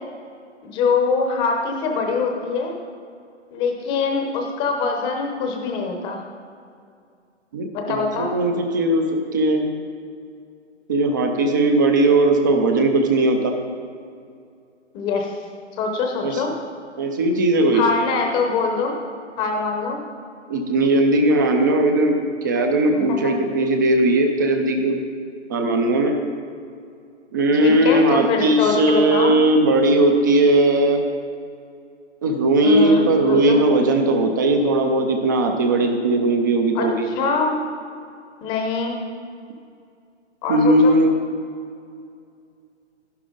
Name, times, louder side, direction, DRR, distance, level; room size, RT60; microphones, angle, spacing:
voice 1, 0.6-2.7 3.5-6.2 7.7-8.3 14.9-15.3 15.8-16.5 17.7-18.9 19.4-20.0 22.9-23.3 27.5-29.4 32.6-33.6 36.7-37.5 38.4-39.0 40.4-40.9, left 4 dB, 15° left, 2 dB, 0.8 m, -23 dB
voice 2, 7.5-9.7 10.9-13.5 16.2-16.3 17.0-17.8 20.5-22.2 22.4-25.0 25.5-26.2 27.3-31.0 32.2-37.1 40.5-41.1, right 2 dB, 15° right, 5 dB, 0.5 m, -18 dB
11.5 x 10.5 x 3.8 m, 2.3 s
hypercardioid pair, 150°, 36 cm